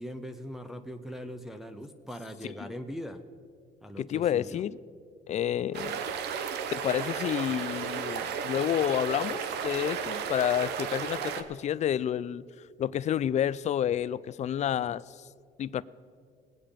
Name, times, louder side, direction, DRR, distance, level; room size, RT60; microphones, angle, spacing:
voice 1, 0.0-3.2 3.8-4.6, equal, ahead, 4 dB, 0.7 m, -40 dB
voice 2, 4.0-4.8 5.3-6.0 6.7-12.4 12.8-15.1 15.6-15.8, left 10 dB, 45° left, 18 dB, 0.4 m, -29 dB
sound 1, 5.7-11.4, right 7 dB, 80° right, 1.0 m, -34 dB
20.0 x 8.7 x 5.2 m, 2.2 s
cardioid pair, 110°, 17 cm